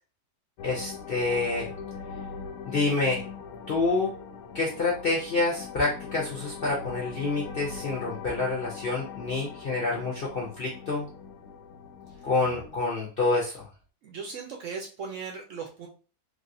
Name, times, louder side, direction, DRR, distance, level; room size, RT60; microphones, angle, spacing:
sound 1, 0.6-12.8, left 6 dB, 75° left, 1.0 m, -41 dB
voice 1, 0.6-1.7 2.7-3.2 3.7-4.1 4.5-11.1 12.2-13.7, left 3 dB, 55° left, -3 dB, 0.6 m, -27 dB
voice 2, 14.0-15.9, right 5 dB, 65° right, 2 dB, 0.8 m, -37 dB
3.2 x 2.5 x 2.6 m, 0.36 s
omnidirectional pair, 1.7 m